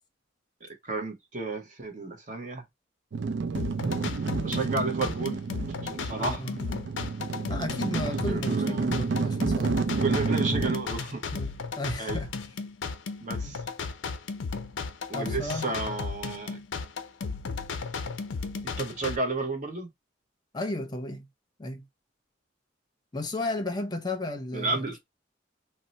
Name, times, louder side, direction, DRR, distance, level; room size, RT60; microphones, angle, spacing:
voice 1, 0.8-2.6 4.4-5.4 5.8-6.4 8.3-8.8 10.0-11.2 12.0-12.2 13.2-13.6 15.1-16.6 18.6-19.9 24.5-25.0, right 3 dB, 45° right, 0.9 m, -32 dB
sound 1, 3.1-10.8, right 4 dB, 65° right, 0.4 m, -30 dB
sound 2, 3.5-19.2, left 4 dB, 90° left, 0.5 m, -35 dB
voice 2, 6.2-6.6 7.5-9.8 11.3-12.3 15.1-15.7 20.5-21.3 21.6-21.9 23.1-25.0, left 1 dB, 20° left, 0.6 m, -33 dB
2.7 x 2.1 x 3.8 m
head